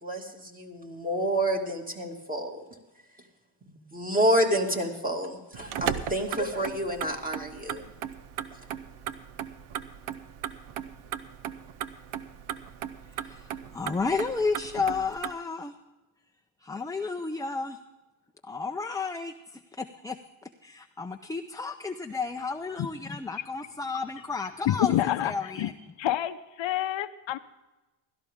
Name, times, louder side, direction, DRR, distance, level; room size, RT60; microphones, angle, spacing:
voice 1, 0.0-2.6 3.7-7.9, right 1 dB, 15° right, 1 dB, 2.3 m, -29 dB
Motor vehicle (road), 5.5-15.3, right 10 dB, 75° right, 0.9 m, -37 dB
voice 2, 13.2-15.7 16.6-17.8 18.4-19.3 19.7-20.2 20.6-24.9 25.2-25.7, left 4 dB, 10° left, 5 dB, 0.4 m, -32 dB
voice 3, 24.7-25.7 26.0-27.4, left 13 dB, 65° left, 11 dB, 0.7 m, -27 dB
16.5 x 13.0 x 3.6 m, 1.1 s
cardioid pair, 100°, 49 cm